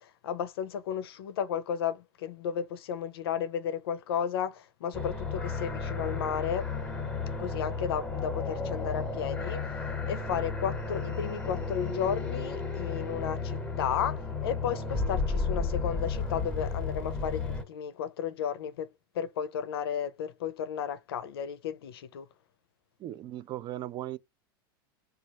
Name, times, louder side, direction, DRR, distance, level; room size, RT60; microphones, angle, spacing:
voice 1, 0.0-6.7 7.4-22.3, left 8 dB, 85° left, 0.5 m, -33 dB
sound 1, 4.9-17.6, left 4 dB, 10° left, 0.9 m, -33 dB
voice 2, 23.0-24.2, right 14 dB, 35° right, 0.3 m, -37 dB
3.1 x 2.4 x 2.7 m
hypercardioid pair, 110°, 12 cm